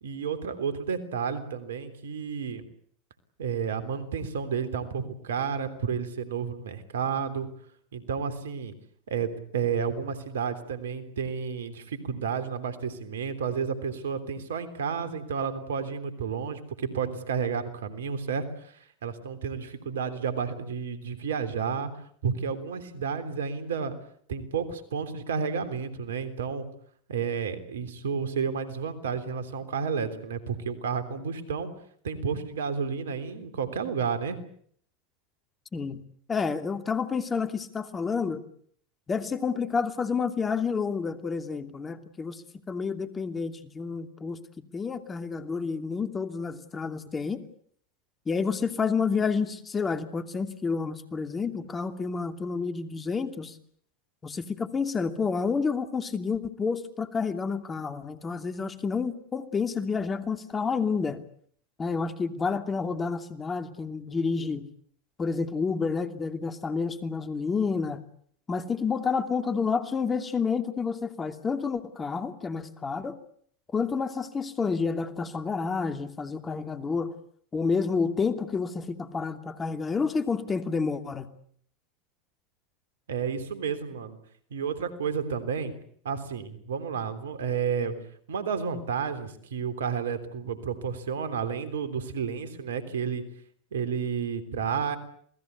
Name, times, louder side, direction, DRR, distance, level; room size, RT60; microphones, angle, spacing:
voice 1, 0.0-2.6 3.4-7.5 7.9-8.7 9.1-18.4 19.0-21.9 22.2-23.9 24.3-26.6 27.1-31.7 32.0-34.4 83.1-84.2 84.5-85.7 86.0-87.9 88.3-93.2 93.7-95.0, right 6 dB, 75° right, 11 dB, 3.4 m, -31 dB
voice 2, 36.3-38.4 39.1-44.4 44.7-47.4 48.3-53.5 54.2-61.2 61.8-64.7 65.2-68.0 68.5-73.2 73.7-77.1 77.5-81.3, left 5 dB, 25° left, 9 dB, 2.7 m, -29 dB
28.0 x 19.5 x 8.3 m, 0.62 s
hypercardioid pair, 85°, 0 cm